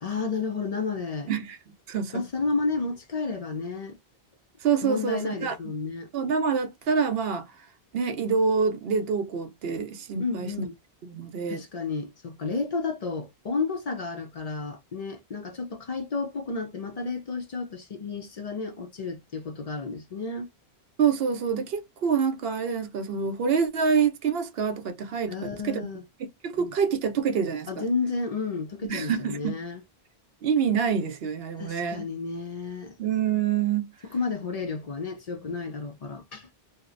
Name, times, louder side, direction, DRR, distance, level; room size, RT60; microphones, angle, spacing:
voice 1, 0.0-1.3 2.1-4.0 4.8-6.1 10.2-10.7 11.5-20.5 25.3-26.0 26.5-26.7 27.7-29.8 31.6-32.9 34.1-36.5, left 4 dB, 50° left, 0.5 m, -32 dB
voice 2, 1.9-2.2 4.6-5.6 6.1-7.5 7.9-10.7 11.0-11.6 21.0-25.8 26.4-27.9 28.8-29.6 30.4-32.1 33.0-33.9, right 6 dB, 70° right, 0.8 m, -26 dB
2.8 x 2.0 x 2.4 m
omnidirectional pair, 1.1 m